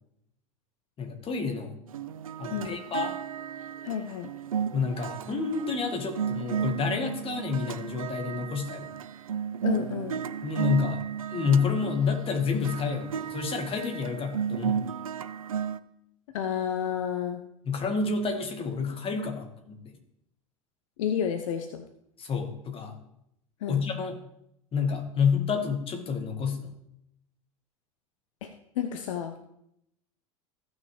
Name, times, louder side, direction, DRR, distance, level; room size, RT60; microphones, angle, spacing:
voice 1, 1.0-1.7 2.4-3.2 4.7-9.0 10.4-11.0 11.3-14.8 17.7-19.8 22.2-23.0 23.7-24.2 24.7-26.7, left 5 dB, 30° left, 5 dB, 1.7 m, -29 dB
sound 1, 1.9-15.8, right 8 dB, 85° right, 0.4 m, -34 dB
voice 2, 3.8-4.3 9.6-10.2 16.3-17.4 21.0-21.8 23.6-23.8 28.4-29.3, left 8 dB, 65° left, 7 dB, 0.7 m, -30 dB
15.5 x 6.2 x 3.2 m, 0.78 s
figure-of-eight pair, 80°, 18 cm